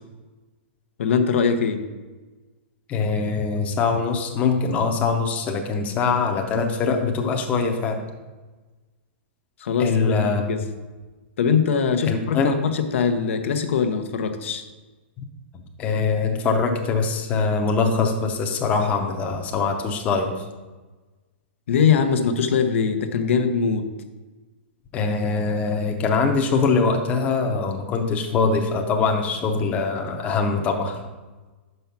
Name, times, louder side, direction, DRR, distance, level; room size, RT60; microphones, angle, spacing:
voice 1, 1.0-1.8 9.6-10.6 11.4-14.6 21.7-23.9, left 6 dB, 80° left, 7 dB, 0.8 m, -22 dB
voice 2, 2.9-8.0 9.8-10.4 12.0-12.5 15.2-15.3 15.8-20.4 24.9-31.0, left 4 dB, 20° left, 3 dB, 0.7 m, -23 dB
5.7 x 5.5 x 5.8 m, 1.2 s
hypercardioid pair, 155°, 7 cm